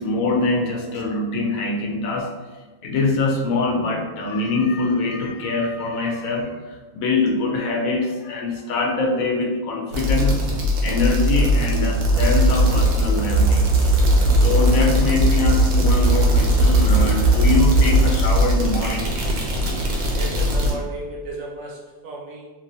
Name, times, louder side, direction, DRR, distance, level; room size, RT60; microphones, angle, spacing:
voice 1, 0.0-2.3 2.8-13.7 14.3-19.1, left 3 dB, 75° left, 1 dB, 1.0 m, -23 dB
sound 1, 9.9-20.7, right 1 dB, 90° right, 1.2 m, -18 dB
voice 2, 20.1-22.5, right 2 dB, 70° right, -1 dB, 1.0 m, -34 dB
3.2 x 3.0 x 2.6 m, 1.2 s
omnidirectional pair, 1.5 m